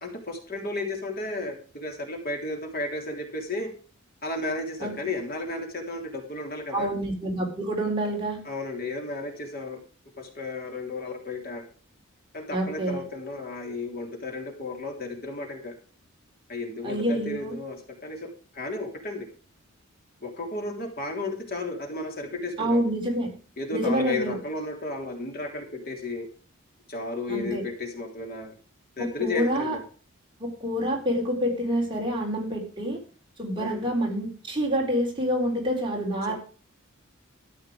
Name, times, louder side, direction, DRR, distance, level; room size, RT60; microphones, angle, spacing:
voice 1, 0.0-3.7 4.2-6.9 8.4-9.8 10.2-11.6 12.3-15.7 16.5-19.3 20.2-22.8 23.6-26.3 26.9-28.5 29.0-29.8 33.6-33.9 36.2-36.3, left 2 dB, 45° left, 2 dB, 3.2 m, -33 dB
voice 2, 6.7-8.4 12.5-13.0 16.8-17.6 22.6-23.3 23.7-24.4 27.3-27.6 29.0-29.8 30.4-33.0 33.4-36.3, equal, 20° right, -1 dB, 4.0 m, -27 dB
13.5 x 9.6 x 4.9 m, 0.39 s
head